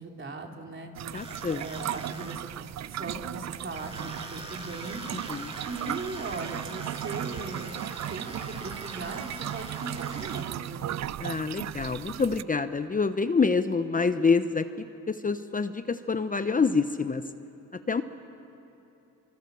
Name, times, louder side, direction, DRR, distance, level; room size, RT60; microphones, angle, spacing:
voice 1, 0.0-0.9 1.5-2.5 2.9-5.0 5.7-7.8 8.1-10.9, right 3 dB, 35° right, 2 dB, 3.6 m, -38 dB
sound 1, 0.9-12.4, right 12 dB, 55° right, 0.6 m, -36 dB
voice 2, 1.1-1.6 5.1-5.5 11.2-17.3 17.9-18.0, left 4 dB, 25° left, 10 dB, 0.9 m, -27 dB
sound 2, 1.1-2.8 3.1-10.4, right 1 dB, 15° right, 6.2 m, -43 dB
24.5 x 23.5 x 7.1 m, 2.9 s
supercardioid pair, 75°, 33 cm